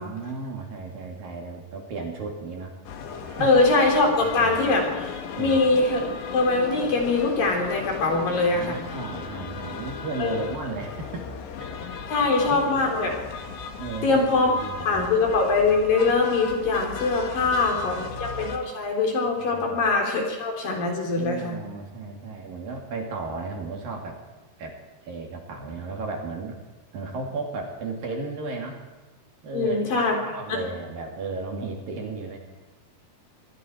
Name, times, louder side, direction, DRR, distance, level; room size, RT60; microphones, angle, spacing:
voice 1, 0.0-2.8 3.3-3.5 4.2-4.6 5.3-5.6 8.3-11.3 11.6-12.9 13.8-15.2 17.3-18.1 19.4-19.8 21.2-24.2 24.6-24.8 25.0-26.6 26.9-28.8 29.4-32.4, right 3 dB, 55° right, 1 dB, 4.4 m, -35 dB
sound 1, 2.9-18.6, left 5 dB, 80° left, 4.0 m, -36 dB
voice 2, 3.4-5.1 5.4-6.0 6.3-8.9 10.2-10.4 12.1-13.2 14.0-14.6 14.9-21.6 29.5-30.6, left 3 dB, 55° left, 1 dB, 5.3 m, -22 dB
27.5 x 21.5 x 4.7 m, 1.2 s
omnidirectional pair, 4.9 m